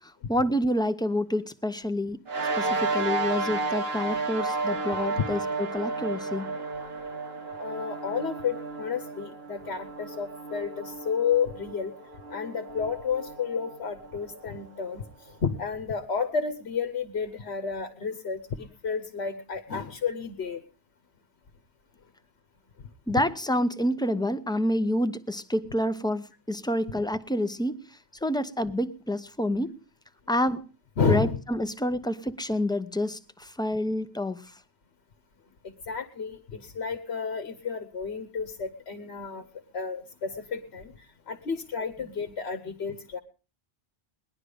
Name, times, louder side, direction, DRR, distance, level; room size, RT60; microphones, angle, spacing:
voice 1, 0.3-2.2 2.6-6.5 23.1-27.8 28.2-29.7 30.3-30.7 31.1-34.4, left 1 dB, 5° left, 11 dB, 0.7 m, -28 dB
sound 1, 2.3-15.0, right 3 dB, 70° right, 1.6 m, -33 dB
voice 2, 7.6-11.9 12.3-15.0 15.4-20.6 31.0-31.4 35.9-39.4 39.7-40.9 41.3-43.2, left 6 dB, 85° left, 9 dB, 1.3 m, -31 dB
19.5 x 11.5 x 5.1 m, 0.35 s
omnidirectional pair, 1.1 m